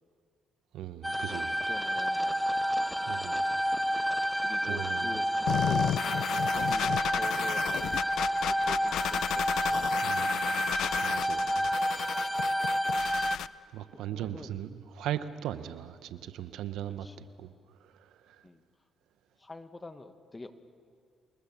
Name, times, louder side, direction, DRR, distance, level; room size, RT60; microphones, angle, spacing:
voice 1, 0.7-1.6 3.1-3.4 4.3-5.1 10.0-10.4 11.0-11.7 13.7-18.4, right 11 dB, 85° right, 1.1 m, -39 dB
sound 1, 1.0-13.4, equal, ahead, 0.6 m, -29 dB
voice 2, 1.3-2.6 4.4-6.2 6.6-10.8 14.1-14.5 17.0-17.2 18.4-18.6 19.4-20.5, left 2 dB, 20° left, 1.5 m, -46 dB
sound 2, 5.5-13.5, left 10 dB, 75° left, 0.5 m, -33 dB
27.5 x 20.5 x 7.3 m
cardioid pair, 90°, 0 cm